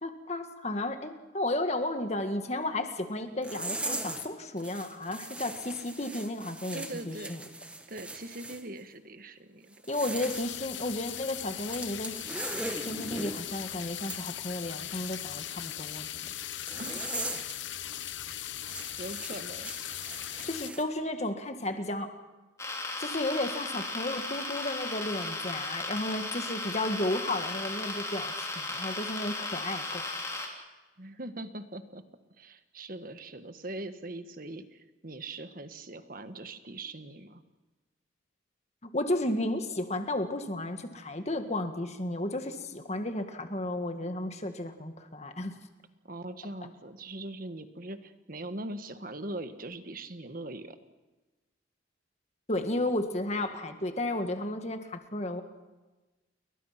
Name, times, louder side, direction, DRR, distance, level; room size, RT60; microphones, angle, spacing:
voice 1, 0.0-7.4 9.9-12.2 12.8-16.3 20.4-22.1 23.0-30.1 38.8-45.5 52.5-55.4, left 1 dB, 35° left, 7 dB, 1.8 m, -33 dB
sound 1, 3.4-4.3 4.6-8.6 9.7-10.5 11.7-13.4 14.0-14.2 16.7-17.5 17.9-18.0 18.6-20.8, right 2 dB, 5° right, 1.6 m, -39 dB
voice 2, 6.7-7.4 7.9-9.8 16.8-17.0 19.0-19.7 31.0-32.0 32.4-37.4 46.0-50.8, right 2 dB, 45° right, 9 dB, 1.5 m, -41 dB
sound 2, 10.2-20.7, left 11 dB, 75° left, 1.0 m, -39 dB
sound 3, 22.6-30.5, left 2 dB, 15° left, 3.3 m, -36 dB
29.5 x 22.5 x 5.9 m, 1.2 s
head